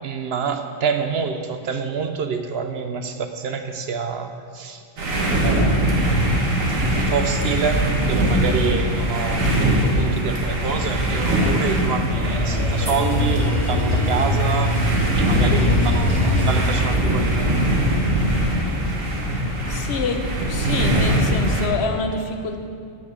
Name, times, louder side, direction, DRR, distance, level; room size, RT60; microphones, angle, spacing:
voice 1, 0.0-4.8 5.4-6.3 6.9-14.7 15.2-17.6, right 6 dB, 60° right, 7 dB, 0.8 m, -27 dB
sound 1, 5.0-21.7, right 1 dB, 85° right, 1.8 m, -22 dB
sound 2, 11.4-16.5, left 1 dB, 35° right, 1.7 m, -22 dB
voice 2, 19.7-22.6, left 3 dB, 60° left, 5 dB, 1.0 m, -26 dB
8.6 x 6.1 x 7.3 m, 2.3 s
omnidirectional pair, 1.3 m